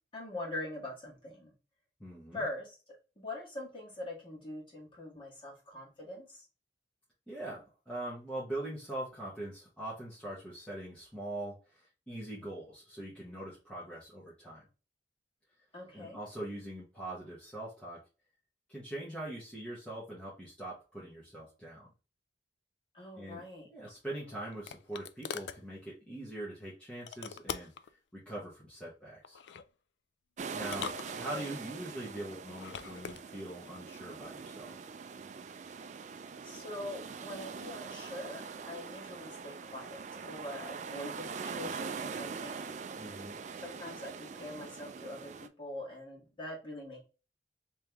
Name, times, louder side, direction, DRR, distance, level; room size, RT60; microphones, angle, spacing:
voice 1, 0.1-1.5 2.3-2.7 3.2-6.4 15.7-16.2 22.9-23.7 30.5-30.7 31.3-31.5 36.4-38.4 38.7-42.8 43.6-45.3 45.6-47.0, left 1 dB, 30° left, -4 dB, 1.7 m, -43 dB
voice 2, 2.0-2.4 7.3-14.6 15.9-18.0 18.7-21.9 23.2-27.7 28.1-29.4 30.5-34.7 43.0-43.4, right 1 dB, 5° left, -7 dB, 1.1 m, -42 dB
sound 1, 23.9-25.6 27.1-27.9 29.2-29.7 30.6-31.6 32.5-33.2, left 7 dB, 80° left, 0.3 m, -42 dB
sound 2, 30.4-45.5, right 5 dB, 40° right, 0.3 m, -43 dB
3.3 x 3.0 x 3.4 m, 0.33 s
head